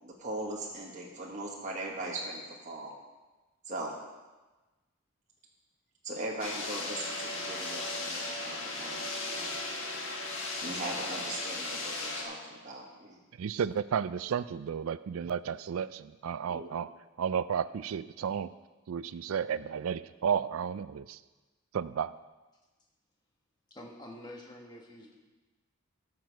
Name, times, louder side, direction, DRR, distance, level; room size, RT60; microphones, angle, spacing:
voice 1, 0.0-2.9 3.7-3.9 6.0-9.0 10.6-13.2 16.5-16.7, right 2 dB, 35° right, -2 dB, 1.2 m, -39 dB
sound 1, 6.4-12.2, left 2 dB, 65° left, 1.5 m, -36 dB
voice 2, 13.4-16.9 17.2-18.5 18.9-21.2 21.7-22.1, right 7 dB, 75° right, 16 dB, 0.3 m, -32 dB
voice 3, 23.7-25.2, left 1 dB, 20° left, 0 dB, 1.3 m, -47 dB
13.5 x 6.1 x 4.6 m, 1.2 s
head